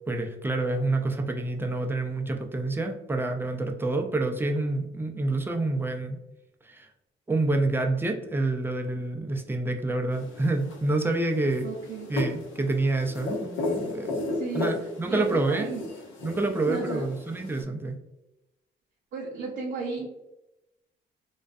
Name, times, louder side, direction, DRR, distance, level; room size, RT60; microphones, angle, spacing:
voice 1, 0.1-6.2 6.6-6.9 7.3-11.7 12.1-14.2 14.5-15.7 16.2-18.0, right 2 dB, 10° right, 3 dB, 0.4 m, -28 dB
sound 1, 10.1-17.6, left 2 dB, 75° left, 0.7 m, -35 dB
voice 2, 11.6-12.1 14.3-14.7 15.1-15.8 16.7-17.1 19.1-20.1, right 4 dB, 70° right, -3 dB, 0.6 m, -33 dB
2.4 x 2.2 x 2.3 m, 0.92 s
cardioid pair, 90°, 20 cm